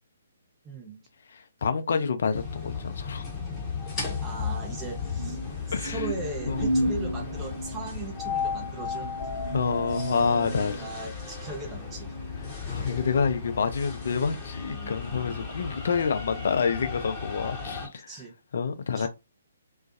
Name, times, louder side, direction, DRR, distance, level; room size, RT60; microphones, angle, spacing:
voice 1, 0.6-1.1 4.2-5.4 5.7-9.1 10.8-12.1 18.1-18.3 18.9-19.1, right 3 dB, 15° right, 0.6 m, -38 dB
voice 2, 1.3-3.2 5.7-6.0 6.5-6.9 9.5-10.8 12.7-18.1 18.5-19.1, left 5 dB, 55° left, 0.4 m, -28 dB
sound 1, 2.3-17.9, left 5 dB, 15° left, 0.9 m, -35 dB
sound 2, 5.2-10.9, right 1 dB, 55° right, 0.3 m, -33 dB
2.4 x 2.2 x 2.5 m
figure-of-eight pair, 130°, 0 cm